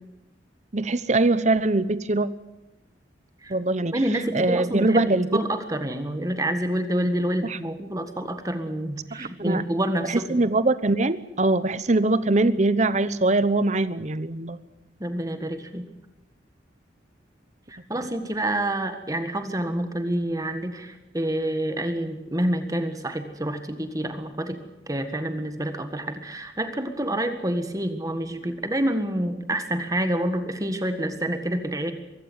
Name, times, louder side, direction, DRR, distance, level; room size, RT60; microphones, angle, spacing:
voice 1, 0.7-2.3 3.5-4.0 4.3-5.4 7.4-7.6 9.1-9.6 10.1-14.6, right 2 dB, 40° right, 15 dB, 0.9 m, -22 dB
voice 2, 3.9-10.4 15.0-15.8 17.7-24.6 24.9-31.9, right 1 dB, 20° right, 8 dB, 1.6 m, -28 dB
24.0 x 15.5 x 9.4 m, 1.0 s
head